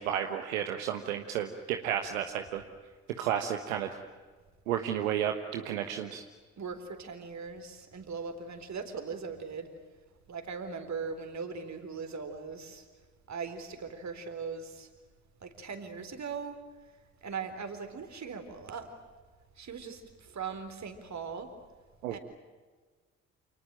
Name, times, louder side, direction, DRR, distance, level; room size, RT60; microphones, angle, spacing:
voice 1, 0.0-2.6 3.2-3.9 4.7-6.2 22.0-22.2, right 9 dB, 75° right, 6 dB, 1.4 m, -32 dB
voice 2, 6.6-9.7 10.3-12.9 13.3-14.9 15.4-16.6 17.2-18.9 19.6-21.5 22.1-22.2, right 5 dB, 40° right, 8 dB, 4.1 m, -39 dB
28.0 x 19.5 x 9.0 m, 1.4 s
figure-of-eight pair, 45°, 41 cm